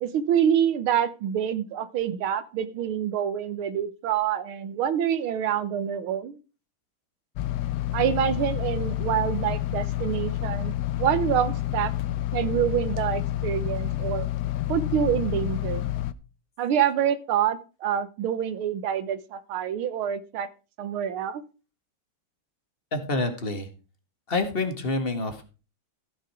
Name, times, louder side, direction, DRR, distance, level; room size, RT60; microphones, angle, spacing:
voice 1, 0.0-6.4 7.9-11.9 12.3-14.3 14.7-15.9 16.6-20.5 20.8-21.4, right 9 dB, 85° right, 14 dB, 1.8 m, -26 dB
sound 1, 7.4-16.1, left 13 dB, 70° left, 1.1 m, -29 dB
voice 2, 22.9-23.7 24.3-25.5, left 2 dB, 30° left, 7 dB, 1.8 m, -27 dB
15.0 x 6.3 x 4.8 m, 0.33 s
omnidirectional pair, 2.3 m